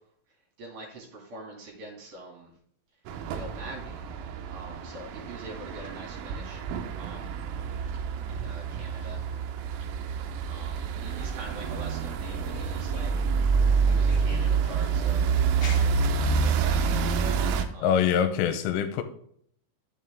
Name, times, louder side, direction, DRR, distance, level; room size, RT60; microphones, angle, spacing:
voice 1, 0.6-2.5 3.3-4.0 4.5-6.6 7.0-7.3 8.3-9.2 10.5-13.1 13.9-15.9 16.4-17.2 17.7-18.0, right 1 dB, 50° right, 3.9 m, -44 dB
sound 1, 3.1-17.7, right 5 dB, 85° right, 3.4 m, -27 dB
sound 2, 11.2-16.1, left 3 dB, 45° left, 2.3 m, -45 dB
voice 2, 17.8-19.0, left 8 dB, 85° left, 3.4 m, -24 dB
11.5 x 7.4 x 3.6 m
omnidirectional pair, 5.9 m